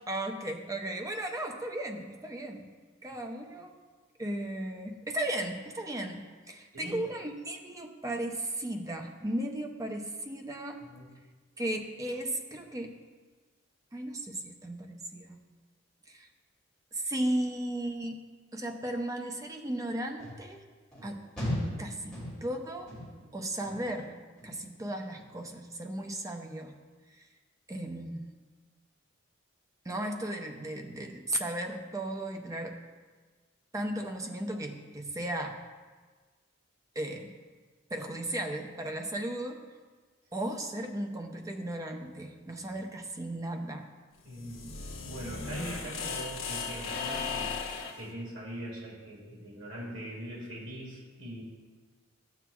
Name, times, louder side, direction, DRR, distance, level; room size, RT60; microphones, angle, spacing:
voice 1, 0.1-2.7 3.0-3.7 4.2-10.8 11.6-12.9 13.9-15.4 16.1-16.3 16.9-18.2 18.5-20.6 21.0-21.3 21.8-22.9 23.3-26.8 27.2-27.3 27.7-28.3 29.8-32.8 33.7-35.6 37.0-37.3 37.9-39.6 40.3-43.9, right 1 dB, 15° right, 4 dB, 0.5 m, -35 dB
voice 2, 10.8-11.1 44.2-44.7 45.0-47.5 48.0-51.4, right 1 dB, 70° right, -4 dB, 2.1 m, -41 dB
sound 1, 20.2-20.4 20.9-21.1 21.4-21.8 22.1-22.5 22.9-23.3 23.6-24.0 24.4-24.7 25.1-25.3, left 1 dB, 5° left, 2.6 m, -36 dB
sound 2, 44.2-48.1, left 5 dB, 75° left, 1.0 m, -37 dB
12.0 x 7.6 x 2.3 m, 1.4 s
head